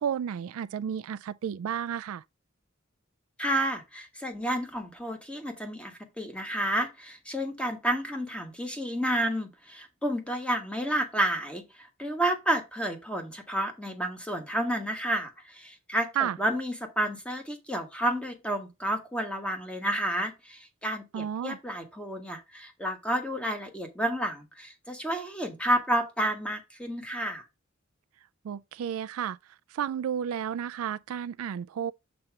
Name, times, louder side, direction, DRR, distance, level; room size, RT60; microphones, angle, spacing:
voice 1, 0.0-2.2 16.2-16.4 21.1-21.6 28.4-29.4 29.7-31.9, right 8 dB, 70° right, 0.3 m, -32 dB
voice 2, 3.4-27.4, right 1 dB, 5° left, 1.3 m, -30 dB
7.8 x 2.8 x 5.8 m
head